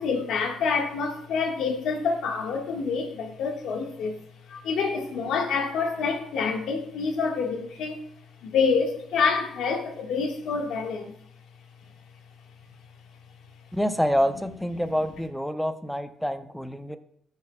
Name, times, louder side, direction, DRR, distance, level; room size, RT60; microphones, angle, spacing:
voice 1, 0.0-4.2 4.5-8.1 8.4-11.2, left 5 dB, 80° left, 1.5 m, -27 dB
voice 2, 13.7-17.0, equal, 5° left, 0.7 m, -27 dB
13.0 x 5.6 x 2.3 m
cardioid pair, 90°, 0 cm